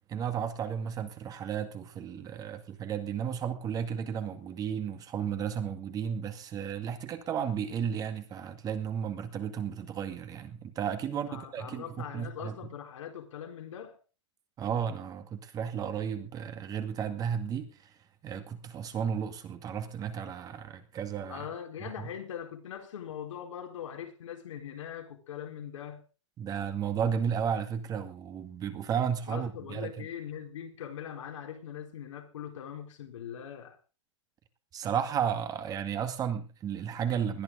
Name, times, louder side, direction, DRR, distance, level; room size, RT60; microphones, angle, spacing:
voice 1, 0.1-12.6 14.6-17.9 18.2-21.5 22.0-22.1 26.4-30.1 34.7-37.4, right 8 dB, 25° right, 2.1 m, -33 dB
voice 2, 11.1-14.0 21.3-26.0 29.3-33.8, left 9 dB, 80° left, 4.4 m, -41 dB
20.5 x 12.0 x 3.8 m
hypercardioid pair, 140°, 16 cm